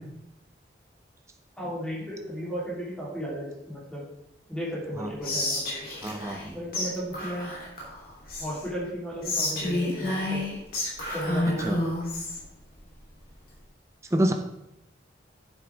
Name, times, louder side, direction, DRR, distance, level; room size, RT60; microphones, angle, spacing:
voice 1, 1.6-4.0 4.5-5.9 6.5-7.5 8.4-10.5 11.1-11.7, equal, 5° left, -7 dB, 3.2 m, -34 dB
Whispering, 5.2-6.5 6.7-6.9 7.1-8.7 9.2-12.4, left 1 dB, 50° left, 3.2 m, -30 dB
voice 2, 6.0-6.5 11.6-11.8 14.1-14.3, right 1 dB, 15° right, 5 dB, 0.6 m, -26 dB
10.0 x 8.1 x 3.5 m, 0.83 s
head